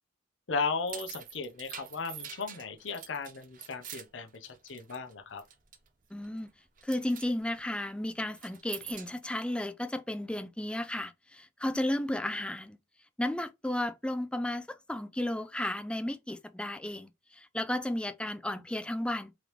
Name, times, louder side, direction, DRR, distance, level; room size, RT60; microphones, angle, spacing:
voice 1, 0.5-5.4, left 4 dB, 75° left, 0.7 m, -36 dB
sound 1, 0.6-5.1 5.4-5.9 6.2-6.5 6.8-7.3 8.3-9.2, right 9 dB, 45° right, 0.6 m, -45 dB
voice 2, 6.1-6.5 6.8-12.8 13.2-19.3, left 1 dB, 5° left, 0.3 m, -33 dB
3.8 x 3.3 x 3.0 m
head